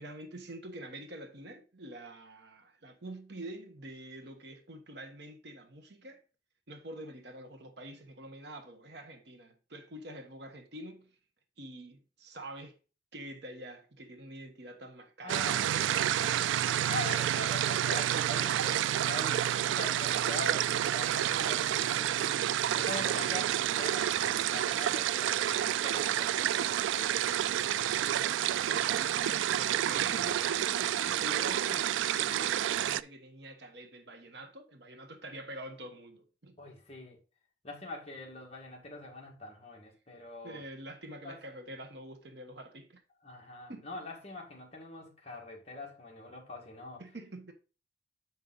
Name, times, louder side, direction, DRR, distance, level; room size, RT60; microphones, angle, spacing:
voice 1, 0.0-6.2 6.7-11.1 11.6-12.8 13.1-15.5 28.5-36.6 40.4-43.0 43.7-43.8 47.0-47.5, right 1 dB, 65° right, 1.2 m, -46 dB
voice 2, 15.2-16.5 16.9-22.4 22.8-27.6 36.6-37.2 37.6-40.6 41.2-41.4 43.2-47.0, left 2 dB, 35° left, 2.0 m, -44 dB
sound 1, 15.3-33.0, right 11 dB, 85° right, 0.3 m, -29 dB
7.5 x 5.4 x 3.9 m
head